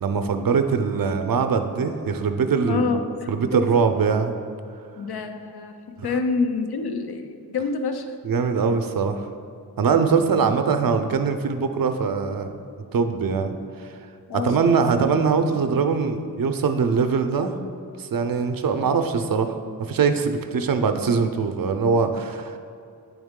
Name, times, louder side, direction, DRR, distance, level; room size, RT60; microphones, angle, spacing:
voice 1, 0.0-2.9 3.3-4.3 8.2-9.3 9.8-13.9 14.4-17.5 18.0-22.6, right 5 dB, 60° right, 7 dB, 0.5 m, -22 dB
voice 2, 2.7-3.7 5.0-8.1 14.3-14.8, left 4 dB, 70° left, 7 dB, 0.6 m, -27 dB
8.6 x 3.5 x 3.6 m, 2.5 s
wide cardioid pair, 65°, 39 cm